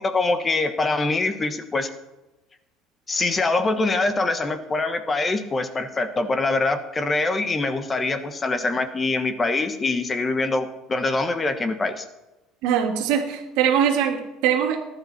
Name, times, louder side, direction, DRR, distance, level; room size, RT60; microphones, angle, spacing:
voice 1, 0.0-1.9 3.1-12.0, left 3 dB, 20° left, 8 dB, 1.3 m, -24 dB
voice 2, 12.6-14.8, right 8 dB, 75° right, 3 dB, 2.5 m, -22 dB
19.5 x 11.5 x 4.3 m, 1.0 s
cardioid pair, 130°, 0 cm